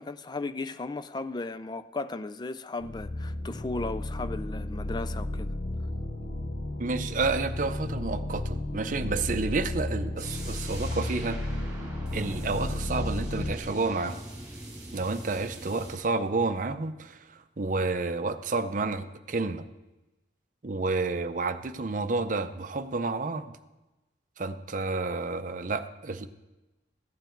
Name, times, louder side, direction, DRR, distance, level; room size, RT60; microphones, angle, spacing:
voice 1, 0.0-5.5, left 3 dB, 25° left, 0.4 m, -35 dB
sound 1, 2.8-13.6, left 1 dB, 60° left, 0.8 m, -33 dB
voice 2, 6.8-11.4 12.1-14.2 14.9-19.7 20.6-23.5 24.4-26.3, right 3 dB, 45° right, 0.6 m, -30 dB
sound 2, 10.2-16.0, right 1 dB, 20° right, 2.5 m, -43 dB
14.5 x 9.2 x 4.5 m
head